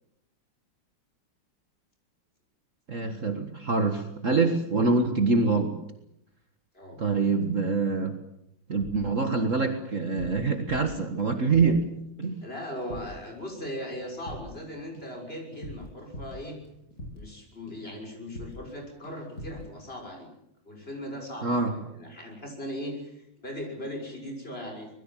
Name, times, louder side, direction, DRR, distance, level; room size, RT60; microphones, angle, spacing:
voice 1, 2.9-5.7 7.0-8.2 8.7-11.8 12.2-12.4 21.4-21.7, right 4 dB, 40° right, 6 dB, 1.9 m, -25 dB
sound 1, 8.8-9.7 10.0-12.0 12.2-12.5 12.8-13.3 13.6-17.4 17.7-18.0 18.3-18.8 19.0-19.7, left 1 dB, 50° left, 8.8 m, -43 dB
voice 2, 12.4-16.6 17.1-20.3 20.6-24.9, equal, 30° left, 2 dB, 6.6 m, -38 dB
25.0 x 21.5 x 7.5 m, 0.80 s
omnidirectional pair, 2.1 m